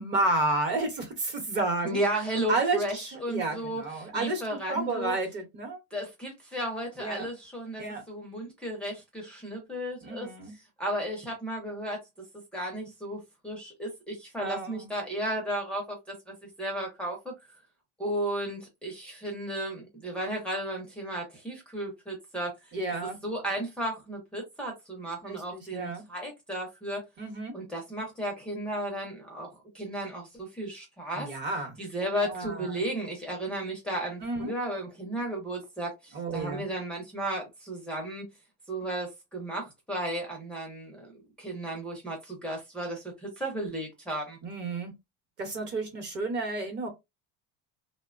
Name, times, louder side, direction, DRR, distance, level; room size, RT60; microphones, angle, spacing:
voice 1, 0.0-2.0 2.5-5.8 7.0-7.3 7.8-8.0 10.0-10.5 14.4-14.9 22.7-23.2 25.2-26.0 27.2-27.5 31.1-31.7 32.2-32.8 34.2-34.5 36.1-36.6 44.4-44.9 45.4-46.9, right 2 dB, 40° right, 0.9 m, -31 dB
voice 2, 1.8-5.2 5.9-10.3 10.8-12.0 12.5-17.3 18.0-22.7 23.2-27.0 27.5-29.5 29.7-31.4 31.8-38.2 38.7-44.4, right 1 dB, 5° left, 0.5 m, -34 dB
2.9 x 2.1 x 2.4 m
cardioid pair, 165°, 29 cm